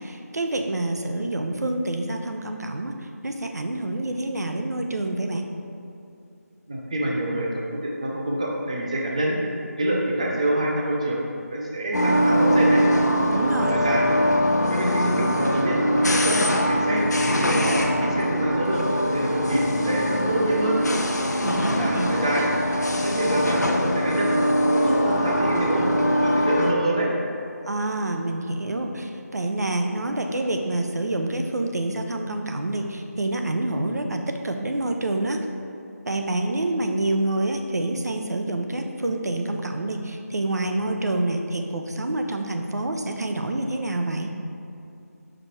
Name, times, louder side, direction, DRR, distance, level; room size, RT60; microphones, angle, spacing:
voice 1, 0.0-2.9 3.2-5.4 13.3-13.7 21.4-22.1 27.7-34.2 34.4-35.4 36.1-44.3, right 2 dB, 75° right, 4 dB, 0.6 m, -27 dB
voice 2, 6.7-9.4 9.8-11.2 11.5-12.8 13.6-14.1 14.7-17.0 17.4-18.8 19.1-20.8 21.8-22.5 23.0-24.3 24.6-25.9 26.2-27.1, right 1 dB, 25° right, -2 dB, 0.5 m, -26 dB
redmond mill, 11.9-26.7, equal, 85° left, 0.7 m, -22 dB
5.1 x 4.8 x 4.2 m, 2.7 s
figure-of-eight pair, 170°, 9 cm